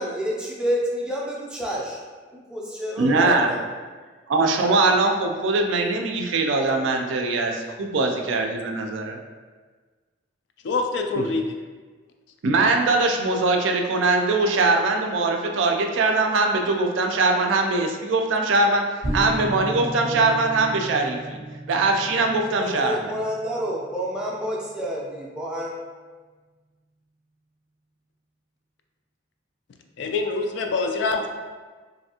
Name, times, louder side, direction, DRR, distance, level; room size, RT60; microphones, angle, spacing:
voice 1, 0.0-2.0 2.3-3.6 22.2-25.7, equal, 5° right, -4 dB, 0.4 m, -29 dB
voice 2, 3.0-3.5 4.3-9.2 11.2-11.3 12.4-18.8 19.1-21.4 21.7-23.1, right 3 dB, 70° right, 3 dB, 0.4 m, -21 dB
voice 3, 10.6-11.4 30.0-31.3, left 3 dB, 60° left, 4 dB, 0.3 m, -25 dB
sound 1, 19.0-24.2, right 1 dB, 90° left, 1.4 m, -34 dB
3.2 x 2.6 x 2.8 m, 1.4 s
head